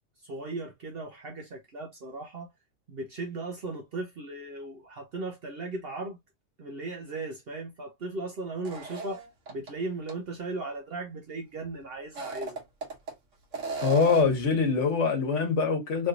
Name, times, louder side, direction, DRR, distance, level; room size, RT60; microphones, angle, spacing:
voice 1, 0.2-2.5 2.9-6.2 6.6-12.6, right 2 dB, 55° right, 0.9 m, -37 dB
sound 1, 8.6-9.7 10.1-10.2 12.0-13.1 13.5-14.4, right 3 dB, 85° right, 1.4 m, -35 dB
voice 2, 13.8-16.1, left 4 dB, 75° left, 1.3 m, -24 dB
3.2 x 2.9 x 2.4 m
omnidirectional pair, 1.3 m